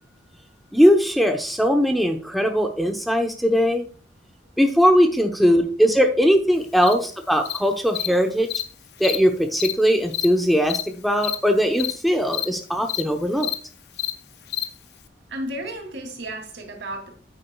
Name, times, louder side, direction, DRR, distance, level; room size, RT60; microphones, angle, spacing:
voice 1, 0.7-3.8 4.6-8.5 9.0-13.5, equal, ahead, 4 dB, 0.9 m, -20 dB
Cricket, 6.8-6.9 7.5-7.6 8.0-8.1 8.5-8.6 9.0-9.2 9.6-9.7 10.1-10.3 10.7-10.8 11.2-11.4 11.8-11.9 12.3-12.5 12.9-13.0 13.4-13.6 14.0-14.1 14.5-14.6, left 12 dB, 60° left, 0.7 m, -27 dB
voice 2, 15.3-17.2, right 1 dB, 85° right, 3 dB, 2.8 m, -34 dB
10.0 x 8.8 x 2.3 m, 0.40 s
head